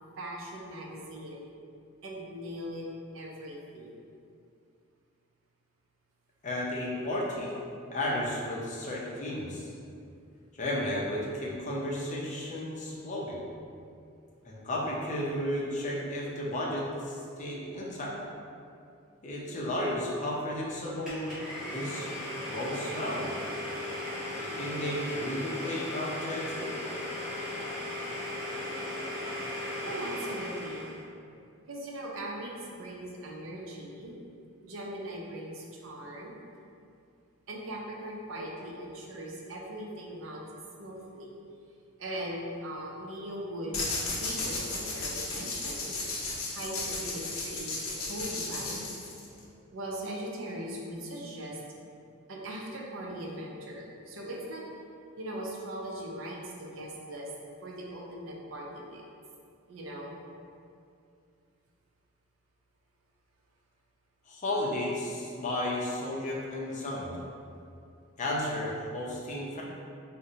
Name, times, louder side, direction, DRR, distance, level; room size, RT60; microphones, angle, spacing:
voice 1, 0.2-1.5 2.0-2.9 3.1-4.0 29.8-30.9 31.7-34.2 34.6-36.4 37.5-40.5 40.8-41.4 42.0-46.0 46.5-48.9 49.7-51.6 52.3-54.7 55.2-57.3 57.6-59.0 59.7-60.2, right 1 dB, 70° right, -2 dB, 0.5 m, -40 dB
voice 2, 6.4-7.5 7.9-9.7 10.5-13.4 14.4-18.2 19.2-21.4 21.7-22.2 22.5-23.4 24.3-26.7 64.3-67.2 68.2-69.6, left 1 dB, 35° left, -4 dB, 0.5 m, -33 dB
Domestic sounds home sounds, 21.0-31.0, left 1 dB, ahead, 0.8 m, -37 dB
sound 1, 43.7-49.4, left 3 dB, 85° left, 0.6 m, -34 dB
3.8 x 2.1 x 2.7 m, 2.5 s
head